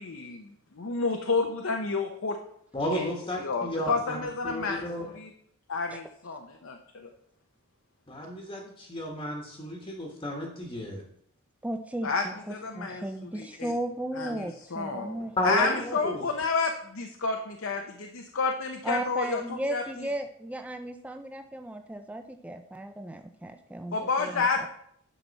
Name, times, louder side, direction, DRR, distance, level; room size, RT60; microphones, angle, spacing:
voice 1, 0.0-2.4 2.9-3.1 3.4-5.3 5.7-7.1 12.0-12.2 12.5-13.7 14.1-20.1 23.9-24.7, left 4 dB, 60° left, 3 dB, 0.7 m, -30 dB
voice 2, 2.7-5.1 8.1-11.0 15.4-16.3, left 1 dB, 20° left, -1 dB, 1.3 m, -33 dB
voice 3, 11.6-16.0 18.8-24.7, right 1 dB, 5° right, 6 dB, 0.4 m, -36 dB
10.0 x 5.9 x 4.1 m, 0.70 s
head